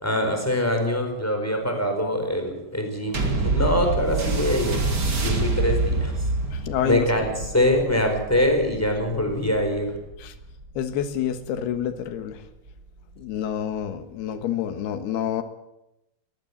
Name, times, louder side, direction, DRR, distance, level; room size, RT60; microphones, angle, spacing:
voice 1, 0.0-4.8 5.2-6.1 6.8-9.9, left 1 dB, 5° left, 4 dB, 4.2 m, -24 dB
sound 1, 3.1-11.9 12.7-12.8, right 2 dB, 30° right, 2.5 m, -27 dB
voice 2, 6.5-7.1 10.2-10.3 10.8-12.4 13.2-15.4, left 9 dB, 75° left, 9 dB, 3.4 m, -28 dB
21.5 x 15.0 x 8.6 m, 0.92 s
omnidirectional pair, 4.7 m